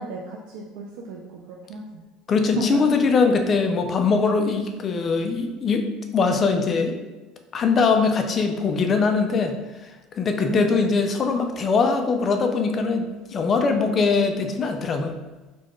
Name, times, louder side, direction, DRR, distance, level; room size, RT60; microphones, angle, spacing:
voice 1, 0.0-2.0 2.4-2.8 10.4-10.7, right 3 dB, 75° right, -1 dB, 0.4 m, -32 dB
voice 2, 2.3-5.8 6.1-7.0 7.5-9.5 10.2-15.1, left 4 dB, 25° left, 5 dB, 0.3 m, -21 dB
4.2 x 2.2 x 3.0 m, 1.1 s
cardioid pair, 160°, 0 cm